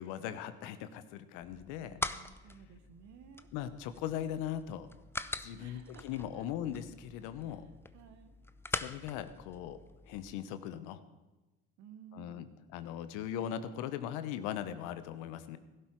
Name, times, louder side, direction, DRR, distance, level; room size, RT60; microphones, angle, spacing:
voice 1, 0.0-1.9 3.5-4.9 5.4-7.6 8.7-9.8 10.1-11.0 12.1-12.5 12.7-15.6, left 10 dB, 75° left, 12 dB, 1.1 m, -39 dB
sound 1, 1.4-10.3, left 2 dB, 10° left, 0.7 m, -43 dB
voice 2, 1.8-3.5 5.5-6.4 7.5-8.3 11.8-12.5, right 8 dB, 65° right, 7 dB, 1.4 m, -56 dB
17.0 x 11.5 x 4.7 m, 1.1 s
supercardioid pair, 75°, 31 cm